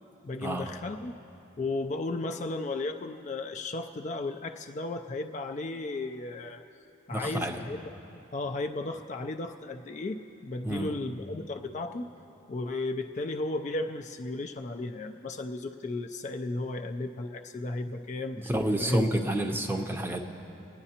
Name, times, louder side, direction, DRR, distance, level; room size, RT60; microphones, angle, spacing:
voice 1, 0.2-1.2 1.6-6.6 7.1-7.8 8.1-12.1 12.5-18.4 18.8-19.1, left 2 dB, 35° left, 5 dB, 0.3 m, -34 dB
voice 2, 7.1-7.6 10.6-10.9 18.5-20.2, right 1 dB, 10° right, 4 dB, 0.6 m, -29 dB
29.0 x 9.7 x 2.9 m, 2.9 s
head